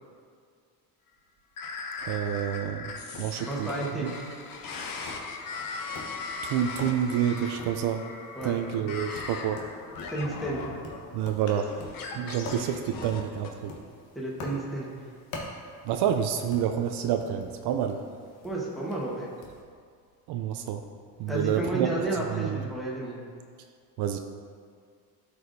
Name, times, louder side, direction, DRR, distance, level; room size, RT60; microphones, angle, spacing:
sound 1, 1.6-13.5, left 4 dB, 50° left, 1.0 m, -39 dB
voice 1, 2.0-2.9 3.2-3.7 4.0-4.1 6.4-8.1 8.4-9.6 11.1-11.7 12.2-13.7 15.9-18.0 20.3-20.8 21.2-21.9 22.3-22.6 24.0-24.2, right 9 dB, 65° right, 6 dB, 0.5 m, -28 dB
Tap, 2.9-19.6, left 2 dB, 90° left, 1.3 m, -46 dB
voice 2, 3.4-4.1 8.3-8.5 10.1-10.6 14.1-14.9 18.4-19.3 21.3-23.2, right 2 dB, ahead, -5 dB, 1.3 m, -31 dB
11.5 x 4.8 x 2.7 m, 2.1 s
cardioid pair, 95°, 43 cm